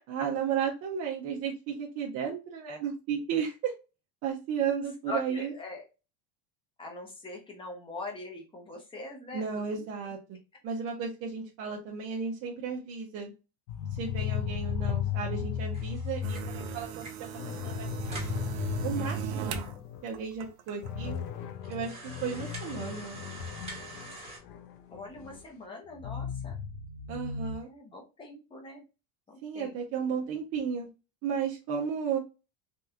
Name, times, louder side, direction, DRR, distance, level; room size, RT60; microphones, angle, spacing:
voice 1, 0.1-3.7 4.2-5.5 9.3-10.2 10.6-13.3 14.0-18.2 18.8-19.7 20.0-21.2 21.7-23.2 27.1-27.7 29.4-30.9 31.2-32.2, right 7 dB, 30° right, -1 dB, 0.5 m, -34 dB
voice 2, 5.1-5.8 6.8-9.8 19.6-19.7 24.9-26.5 27.6-28.8 29.3-29.7, left 2 dB, 10° left, 1 dB, 0.6 m, -42 dB
sound 1, 13.7-20.1 20.4-20.5 20.8-25.4 25.9-27.6, left 8 dB, 80° left, 0.8 m, -36 dB
sound 2, 15.7-17.3 17.7-17.8 18.0-18.4 19.1-19.2 19.4-19.5 20.2-20.3 20.8-20.9 21.6-24.4, right 2 dB, 10° right, 1.2 m, -46 dB
sound 3, 16.2-19.7 20.1-20.9, right 8 dB, 65° right, 0.7 m, -37 dB
3.6 x 2.3 x 2.7 m, 0.28 s
cardioid pair, 160°, 50 cm